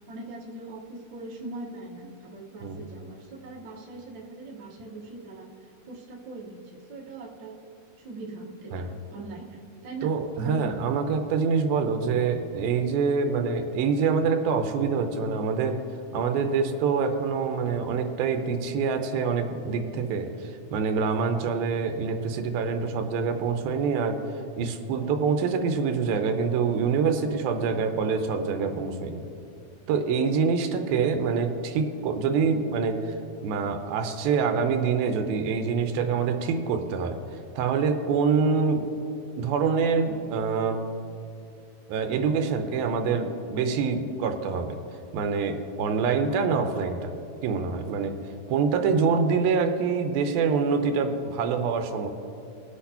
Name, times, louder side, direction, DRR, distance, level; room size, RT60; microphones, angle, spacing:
voice 1, 0.1-5.5 5.9-7.6 8.0-11.0, right 2 dB, 55° right, -4 dB, 1.3 m, -41 dB
voice 2, 10.0-15.8 16.1-24.2 24.6-29.2 29.9-33.1 33.4-37.2 37.6-38.9 39.4-40.9 41.9-44.8 45.1-47.1 47.4-48.2 48.5-52.1, right 5 dB, 85° right, 6 dB, 2.5 m, -25 dB
20.5 x 8.0 x 2.9 m, 2.6 s
omnidirectional pair, 4.3 m